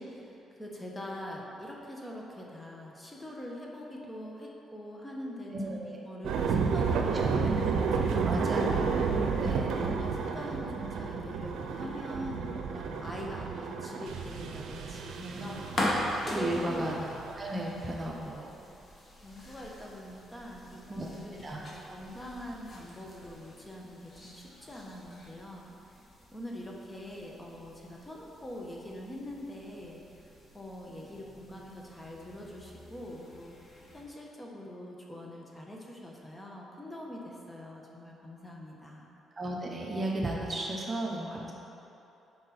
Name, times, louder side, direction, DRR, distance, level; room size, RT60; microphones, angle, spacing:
voice 1, 0.0-8.8 9.7-16.0 16.3-16.8 18.2-18.7 19.2-39.1, left 1 dB, 15° left, -2 dB, 1.4 m, -44 dB
voice 2, 5.5-6.0 7.4-7.6 8.2-8.8 9.4-9.8 15.5-15.9 16.2-18.5 20.9-21.1 21.4-21.6 39.4-41.5, right 1 dB, 30° right, -2 dB, 1.0 m, -34 dB
sound 1, 6.2-17.8, right 5 dB, 75° right, 0.7 m, -31 dB
sound 2, 15.1-34.0, left 1 dB, 40° left, 2.0 m, -42 dB
10.5 x 5.3 x 4.4 m, 3.0 s
cardioid pair, 90°, 0 cm